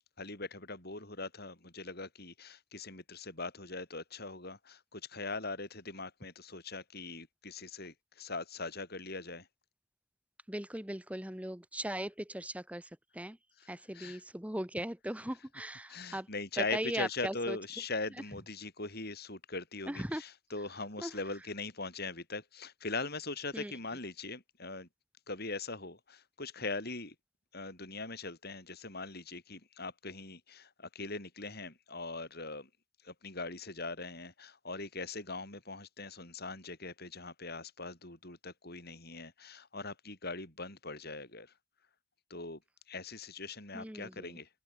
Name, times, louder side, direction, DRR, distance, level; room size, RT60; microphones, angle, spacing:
voice 1, 0.2-9.5 13.6-14.2 15.3-24.9 25.3-27.1 27.5-32.7 33.0-41.5 42.3-42.6 42.9-44.5, left 3 dB, 50° left, 7.3 m, -41 dB
voice 2, 10.5-12.8 13.1-13.4 13.7-16.3 16.6-17.6 19.9-20.2 21.0-21.1 23.5-23.7 43.7-44.4, right 1 dB, 5° right, 1.3 m, -38 dB
open air
head